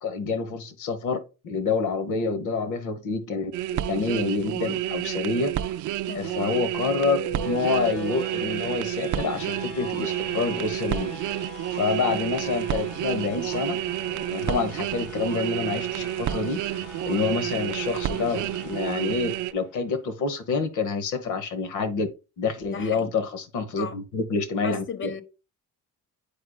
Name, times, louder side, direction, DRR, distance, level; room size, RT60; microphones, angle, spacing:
voice 1, 0.0-5.5 6.1-11.4 11.7-13.8 14.3-22.1 22.4-25.1, left 4 dB, 80° left, 1.1 m, -28 dB
sound 1, 3.5-19.5, right 13 dB, 80° right, 0.5 m, -30 dB
voice 2, 6.0-6.5 11.9-12.0 22.7-23.1 23.8-24.0 24.6-25.2, left 6 dB, 40° left, 1.1 m, -36 dB
sound 2, 6.7-19.7, equal, 60° left, 2.1 m, -40 dB
8.6 x 4.9 x 2.3 m
cardioid pair, 90°, 30 cm